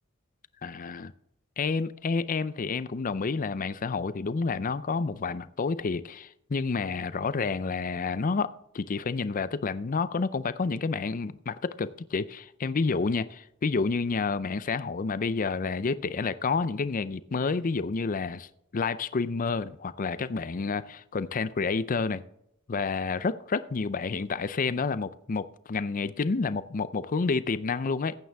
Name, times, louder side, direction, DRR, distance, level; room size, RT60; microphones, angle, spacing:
voice 1, 0.6-1.1 1.6-18.5 18.7-22.2 22.7-28.2, left 4 dB, 40° left, 0.5 m, -29 dB
15.0 x 9.0 x 3.5 m
head